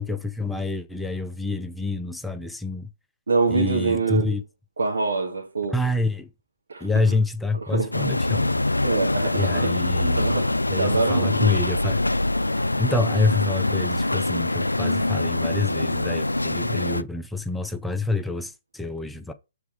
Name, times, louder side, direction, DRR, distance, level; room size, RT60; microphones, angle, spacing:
voice 1, 0.0-2.9 3.5-4.4 5.7-6.3 6.8-8.6 9.3-10.3 10.7-12.0 12.8-19.3, left 3 dB, 5° left, 0.5 m, -27 dB
voice 2, 3.3-4.4 4.8-5.8 6.7-7.2 7.5-7.9 8.8-9.8 10.2-11.4, right 4 dB, 70° right, 1.5 m, -25 dB
sound 1, 7.9-17.0, left 2 dB, 90° left, 0.3 m, -24 dB
7.3 x 3.6 x 4.7 m
figure-of-eight pair, 130°, 0 cm